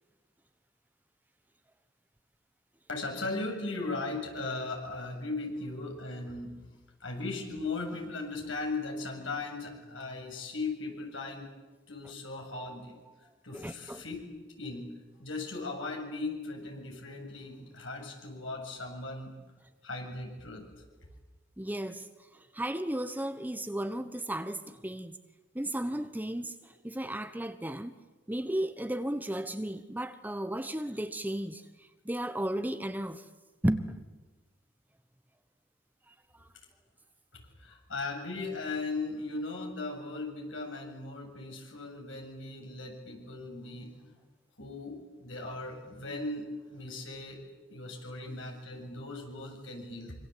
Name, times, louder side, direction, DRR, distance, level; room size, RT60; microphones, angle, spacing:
voice 1, 2.9-6.6 7.0-11.5 11.9-12.9 13.4-19.3 19.8-20.7 37.3-44.1 44.6-47.4 47.7-50.1, left 3 dB, 80° left, 8.0 m, -38 dB
voice 2, 13.5-14.0 21.6-22.1 22.3-25.2 25.5-27.9 28.3-31.6 32.0-33.2 33.6-34.0, right 1 dB, 10° right, 1.1 m, -34 dB
26.0 x 26.0 x 8.5 m
head